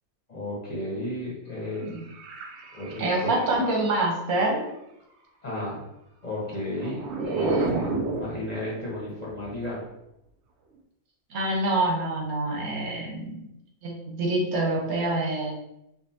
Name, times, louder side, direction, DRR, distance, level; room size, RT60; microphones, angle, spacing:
voice 1, 0.3-1.8 2.7-3.3 5.4-5.8 6.2-9.8, left 1 dB, 35° left, -5 dB, 0.8 m, -33 dB
sound 1, 1.9-4.0 6.5-9.5, right 3 dB, 65° right, 0.7 m, -32 dB
voice 2, 3.0-4.6 7.2-7.8 11.3-13.5 13.8-15.5, right 2 dB, 85° right, -1 dB, 1.3 m, -26 dB
5.2 x 2.1 x 2.7 m, 0.84 s
omnidirectional pair, 1.5 m